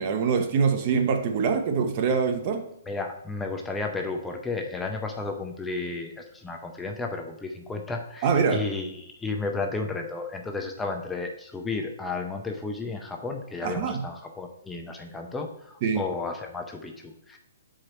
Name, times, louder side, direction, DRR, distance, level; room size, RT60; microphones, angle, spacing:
voice 1, 0.0-2.6 8.2-8.7 13.6-14.0 15.8-16.0, right 5 dB, 40° right, 7 dB, 0.7 m, -24 dB
voice 2, 2.9-17.4, left 3 dB, 10° left, 3 dB, 0.5 m, -33 dB
7.1 x 4.9 x 3.1 m, 0.78 s
hypercardioid pair, 150°, 0 cm